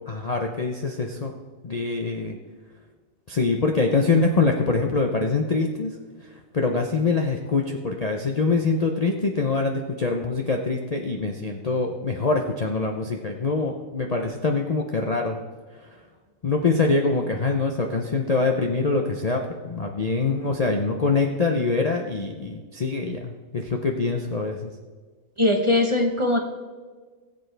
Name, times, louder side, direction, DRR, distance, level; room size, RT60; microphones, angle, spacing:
voice 1, 0.1-1.3 1.6-2.4 3.3-6.0 6.5-15.4 16.4-24.7, left 3 dB, 40° left, 2 dB, 0.6 m, -24 dB
voice 2, 25.4-26.4, left 2 dB, 25° right, 2 dB, 1.0 m, -20 dB
18.5 x 8.0 x 3.3 m, 1.4 s
omnidirectional pair, 1.5 m